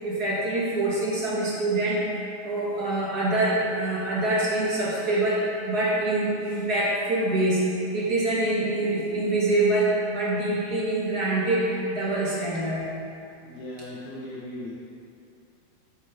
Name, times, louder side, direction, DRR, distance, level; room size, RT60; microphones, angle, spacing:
voice 1, 0.0-2.1 2.4-7.6 7.9-12.9, right 2 dB, 40° right, -7 dB, 1.6 m, -25 dB
voice 2, 13.4-14.7, left 1 dB, 65° left, -7 dB, 2.4 m, -38 dB
12.5 x 7.7 x 3.6 m, 2.5 s
omnidirectional pair, 3.9 m